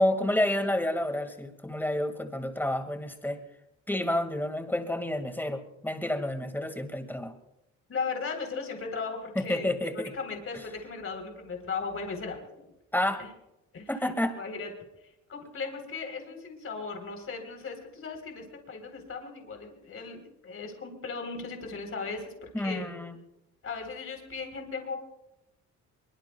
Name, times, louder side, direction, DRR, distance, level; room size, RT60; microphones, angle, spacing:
voice 1, 0.0-3.4 3.9-7.3 9.4-9.9 12.9-13.3 13.9-14.3 22.5-23.2, left 1 dB, 5° left, 6 dB, 2.0 m, -29 dB
voice 2, 7.9-9.7 10.1-12.7 13.2-13.3 13.7-14.7 15.0-22.8 23.6-25.0, left 4 dB, 45° left, 4 dB, 3.9 m, -37 dB
23.5 x 22.5 x 2.3 m, 0.87 s
cardioid pair, 90°, 30 cm